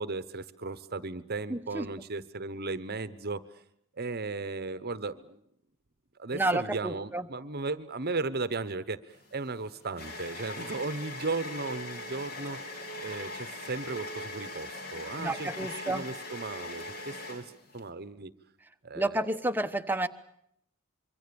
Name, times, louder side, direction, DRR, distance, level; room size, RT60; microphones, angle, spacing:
voice 1, 0.0-3.4 3.9-5.4 6.2-12.6 13.0-18.3 18.8-19.2, right 3 dB, 45° right, 14 dB, 1.0 m, -36 dB
voice 2, 1.5-1.9 6.3-7.3 15.2-16.1 18.9-20.1, right 2 dB, 10° right, 9 dB, 1.0 m, -30 dB
sound 1, 9.1-17.9, left 2 dB, 45° left, 3.4 m, -41 dB
26.0 x 24.0 x 7.0 m, 0.73 s
head